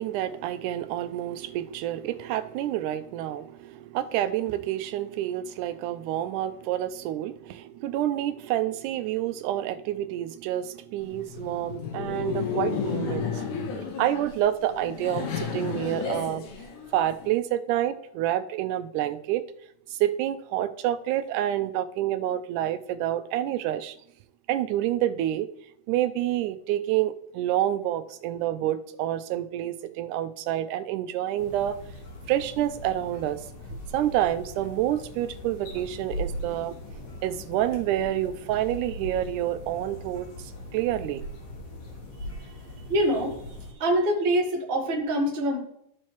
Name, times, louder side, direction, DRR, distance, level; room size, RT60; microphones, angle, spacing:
voice 1, 0.0-13.3 14.0-16.4 16.9-19.4 19.9-24.0 24.5-25.5 25.9-31.8 32.3-33.4 33.9-36.8 37.2-41.2, right 12 dB, 90° right, 11 dB, 2.1 m, -28 dB
Laughter, 11.0-17.3, left 6 dB, 85° left, 2.7 m, -32 dB
sound 1, 31.4-43.7, left 1 dB, 70° left, 2.9 m, -40 dB
voice 2, 42.9-43.4 43.7-45.6, right 1 dB, 50° right, -1 dB, 0.7 m, -24 dB
13.5 x 4.6 x 3.0 m, 0.75 s
omnidirectional pair, 3.5 m